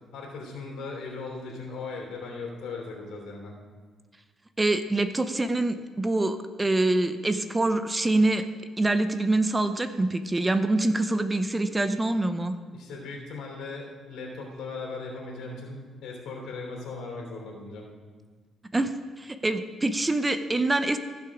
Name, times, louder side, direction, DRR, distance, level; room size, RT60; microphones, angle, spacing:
voice 1, 0.1-3.5 12.7-17.9, left 3 dB, 85° left, 0 dB, 3.1 m, -38 dB
voice 2, 4.6-8.4 8.8-12.6 18.7-21.0, right 2 dB, 15° right, 10 dB, 0.5 m, -25 dB
15.0 x 6.0 x 4.9 m, 1.4 s
cardioid pair, 110°, 0 cm